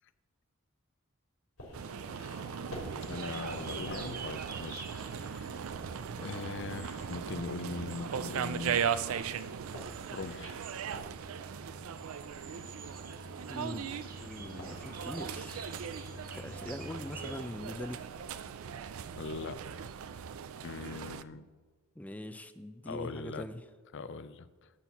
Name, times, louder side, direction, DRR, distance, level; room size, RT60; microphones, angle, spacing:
sound 1, 1.6-20.2, left 1 dB, 80° left, 3.1 m, -52 dB
sound 2, 1.7-21.2, right 7 dB, 75° right, 0.4 m, -39 dB
voice 1, 3.0-5.6 6.1-9.0 10.1-10.7 19.1-19.8 20.6-21.5 22.8-23.5 23.9-24.7, left 4 dB, 60° left, 14 dB, 0.5 m, -41 dB
sound 3, 3.0-17.4, right 3 dB, 45° right, 0.8 m, -49 dB
voice 2, 13.5-13.9 14.2-15.7 16.3-18.0 22.0-23.6, left 1 dB, 5° left, 9 dB, 0.4 m, -42 dB
12.5 x 4.4 x 7.0 m, 1.4 s
head